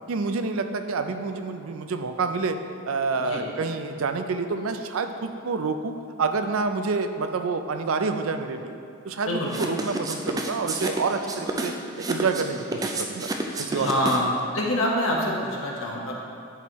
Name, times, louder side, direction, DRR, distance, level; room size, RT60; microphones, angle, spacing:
voice 1, 0.1-2.6 2.9-8.8 9.0-11.7 12.1-13.3 13.6-13.9, right 4 dB, 80° right, 8 dB, 0.4 m, -28 dB
sound 1, 9.5-14.4, right 2 dB, 15° right, 0.3 m, -30 dB
voice 2, 13.7-14.3 14.5-16.1, left 1 dB, 75° left, -2 dB, 1.2 m, -26 dB
10.5 x 4.5 x 3.1 m, 2.6 s
head